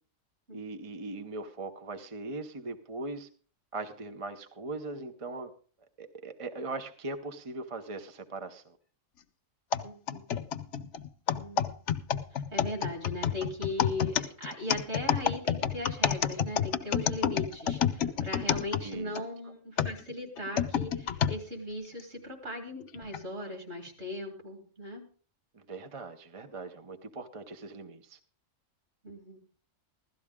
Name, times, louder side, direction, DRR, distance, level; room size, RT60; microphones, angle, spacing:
voice 1, 0.5-3.3 3.7-5.5 6.0-8.8 18.8-19.2 25.5-28.2, right 3 dB, 30° right, 7 dB, 0.6 m, -40 dB
sound 1, 9.7-19.2 19.8-21.4 22.0-22.1 22.9-23.2, left 8 dB, 65° left, 1.0 m, -29 dB
voice 2, 9.8-10.4 11.3-11.8 12.3-25.1 29.0-29.4, left 2 dB, 50° right, 1 dB, 3.8 m, -38 dB
16.0 x 13.0 x 3.6 m, 0.42 s
omnidirectional pair, 1.4 m